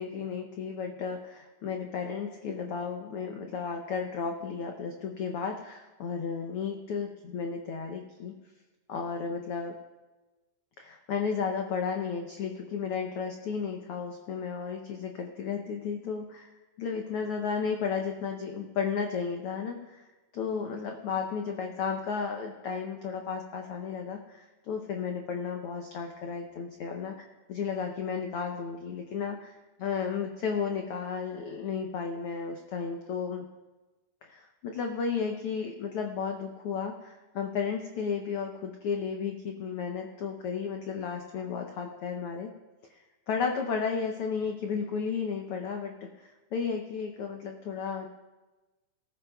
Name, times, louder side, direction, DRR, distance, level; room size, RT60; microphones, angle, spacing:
voice 1, 0.0-8.3 8.9-9.8 10.8-20.0 20.3-33.4 34.2-42.5 42.9-48.1, left 6 dB, 85° left, 3 dB, 1.2 m, -33 dB
18.5 x 14.5 x 2.3 m, 1.2 s
omnidirectional pair, 3.5 m